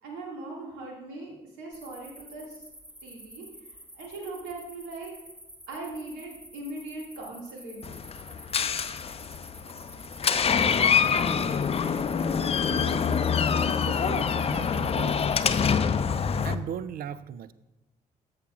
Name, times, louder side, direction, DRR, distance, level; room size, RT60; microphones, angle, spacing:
voice 1, 0.0-2.6 3.0-5.1 5.7-7.9 10.2-11.4, right 2 dB, 70° right, -2 dB, 2.1 m, -40 dB
sound 1, 1.7-15.7, equal, 5° right, 1.8 m, -49 dB
Door, 7.8-16.5, left 6 dB, 30° left, 0.5 m, -25 dB
voice 2, 12.7-13.0 13.8-15.2 16.4-17.5, right 8 dB, 50° right, 16 dB, 0.5 m, -37 dB
13.5 x 6.5 x 2.4 m, 0.94 s
figure-of-eight pair, 45°, 20 cm